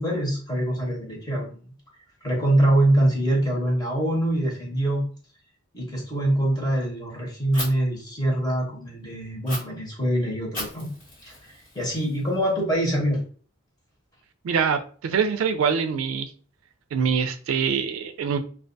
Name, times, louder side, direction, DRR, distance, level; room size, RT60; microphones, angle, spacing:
voice 1, 0.0-1.6 2.2-5.0 5.7-10.9 11.2-13.2, right 1 dB, 20° left, -3 dB, 0.8 m, -24 dB
Fire, 7.5-7.7 9.5-9.6 10.5-12.5, left 1 dB, 40° left, 1.1 m, -36 dB
voice 2, 14.4-16.3 16.9-18.4, right 6 dB, 85° right, 8 dB, 0.3 m, -24 dB
2.3 x 2.2 x 2.5 m, 0.42 s
head